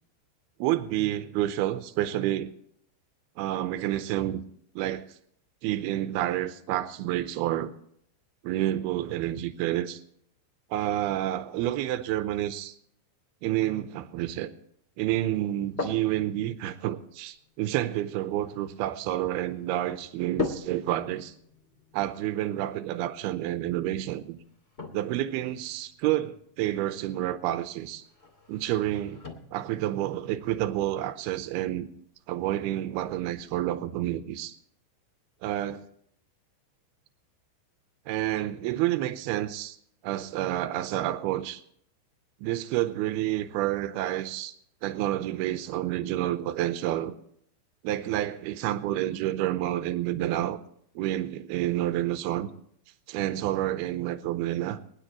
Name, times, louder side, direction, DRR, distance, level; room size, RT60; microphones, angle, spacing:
voice 1, 0.6-2.5 3.4-4.4 4.8-5.0 5.6-7.7 8.4-10.0 10.7-12.8 13.4-14.5 15.0-21.3 21.9-24.4 24.9-28.0 28.5-29.2 29.5-31.9 32.3-34.6 35.4-35.8 38.1-39.8 40.0-41.6 42.4-44.5 44.8-47.1 47.8-50.6 51.0-52.5 53.1-54.8, right 13 dB, 90° right, 2.2 m, -29 dB
sound 1, 15.3-33.4, left 4 dB, 30° left, 1.1 m, -43 dB
23.0 x 11.0 x 3.0 m
omnidirectional pair, 5.5 m